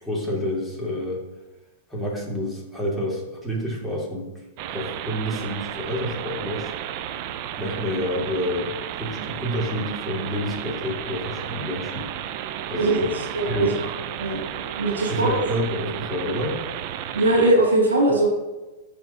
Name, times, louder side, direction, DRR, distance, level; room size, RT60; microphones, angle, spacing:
voice 1, 0.0-1.2 1.9-4.3 4.7-6.7 7.6-12.1 12.7-13.2 13.5-13.8 15.0-16.6, equal, ahead, -5 dB, 2.0 m, -28 dB
sound 1, 4.6-17.5, right 10 dB, 50° right, 0.4 m, -33 dB
voice 2, 12.8-13.7 14.2-14.4 14.8-15.4 17.1-18.3, right 1 dB, 85° right, -2 dB, 1.6 m, -20 dB
10.0 x 3.4 x 2.7 m, 1.1 s
hypercardioid pair, 105°, 0 cm